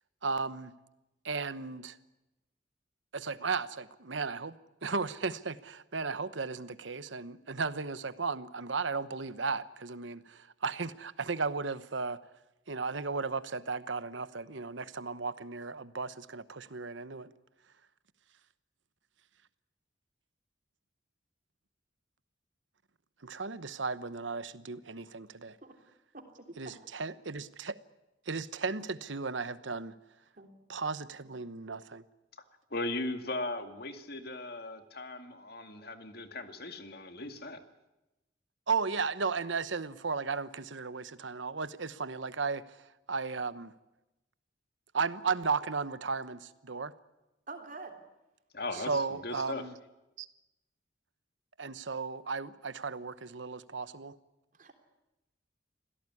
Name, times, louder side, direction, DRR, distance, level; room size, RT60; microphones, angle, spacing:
voice 1, 0.2-0.7 1.2-2.0 3.1-4.5 4.8-12.2 12.7-17.3 23.2-25.6 26.6-27.8 28.3-29.9 30.7-32.0 38.7-42.6 43.1-43.7 44.9-46.9 48.7-49.7 50.2-50.3 51.6-54.2, right 4 dB, 80° right, 14 dB, 1.1 m, -35 dB
voice 2, 26.1-26.8 30.4-30.6 47.5-48.0 54.5-54.7, right 3 dB, 45° right, 5 dB, 3.3 m, -46 dB
voice 3, 32.7-37.6 48.5-49.6, left 2 dB, 55° left, 8 dB, 2.2 m, -38 dB
26.0 x 17.0 x 9.8 m, 0.98 s
head